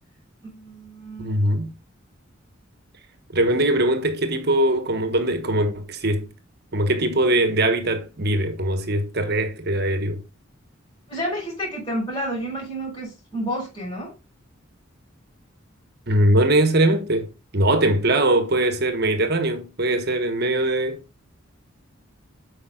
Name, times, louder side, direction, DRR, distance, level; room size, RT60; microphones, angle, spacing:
voice 1, 0.4-1.4 11.1-14.1, equal, 25° left, 4.9 m, -30 dB
voice 2, 1.2-1.7 3.3-6.3 6.7-10.2 16.1-17.3 17.5-21.0, right 1 dB, 50° right, 1.2 m, -21 dB
8.7 x 5.2 x 3.7 m
head